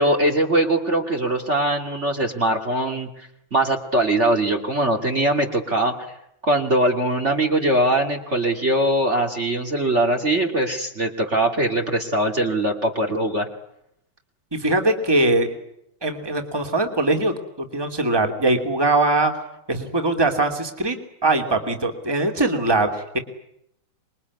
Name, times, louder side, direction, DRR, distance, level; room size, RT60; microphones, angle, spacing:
voice 1, 0.0-6.1 6.4-13.5, right 1 dB, 35° right, 4 dB, 2.7 m, -21 dB
voice 2, 14.5-15.5 16.0-17.3 17.7-19.4 19.7-21.0 21.2-23.2, right 2 dB, 10° right, 5 dB, 2.8 m, -21 dB
26.5 x 22.5 x 9.7 m, 0.78 s
omnidirectional pair, 2.3 m